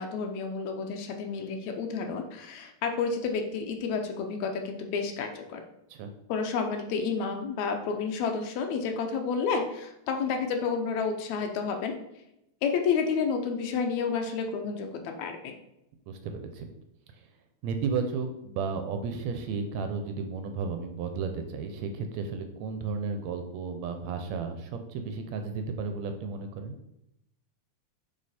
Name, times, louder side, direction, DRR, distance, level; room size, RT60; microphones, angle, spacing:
voice 1, 0.0-5.6 6.3-12.0 12.6-15.5, left 5 dB, 75° left, 5 dB, 2.0 m, -30 dB
voice 2, 16.1-16.7 17.1-17.2 17.6-26.8, right 5 dB, 75° right, 6 dB, 1.8 m, -33 dB
8.6 x 3.9 x 4.2 m, 0.84 s
omnidirectional pair, 3.4 m